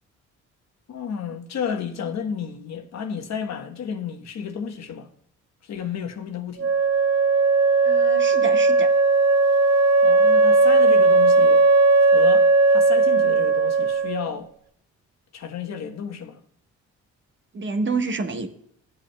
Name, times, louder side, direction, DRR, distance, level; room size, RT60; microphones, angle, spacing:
voice 1, 0.9-5.1 5.6-6.7 10.0-11.6 12.0-14.5 15.3-16.4, left 7 dB, 60° left, 1.2 m, -32 dB
Wind instrument woodwind instrument, 6.6-14.3, right 3 dB, 60° right, 0.9 m, -17 dB
voice 2, 7.8-8.9 17.5-18.5, right 4 dB, 40° right, 1.2 m, -28 dB
15.5 x 7.9 x 2.2 m
cardioid pair, 90°, 30 cm